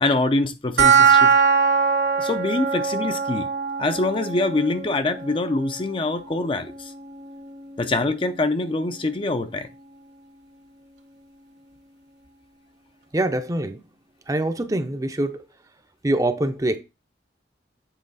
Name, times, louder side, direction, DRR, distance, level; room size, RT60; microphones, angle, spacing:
voice 1, 0.0-1.3 2.2-3.5 3.8-6.9 7.8-9.7, left 2 dB, 30° left, 0.5 m, -24 dB
sound 1, 0.8-11.8, right 5 dB, 65° right, 1.4 m, -24 dB
voice 2, 13.1-13.8 14.3-15.4 16.0-16.8, right 1 dB, 20° right, 0.6 m, -24 dB
7.6 x 3.8 x 4.0 m
head